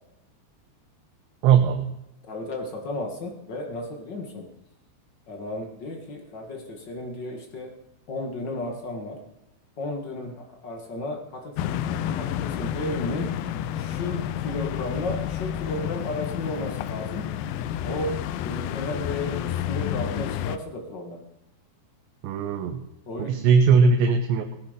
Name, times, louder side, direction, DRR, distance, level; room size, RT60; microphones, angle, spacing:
voice 1, 1.4-1.9 22.2-22.8 23.2-24.5, right 6 dB, 90° right, 5 dB, 3.2 m, -19 dB
voice 2, 2.3-4.4 5.3-7.7 8.1-9.2 9.8-13.3 13.7-17.2 17.8-18.2 18.4-21.2 23.1-23.4, left 2 dB, 60° left, 3 dB, 1.1 m, -34 dB
sound 1, 11.6-20.6, left 10 dB, 90° left, 2.0 m, -30 dB
18.0 x 10.5 x 5.1 m, 0.86 s
omnidirectional pair, 4.9 m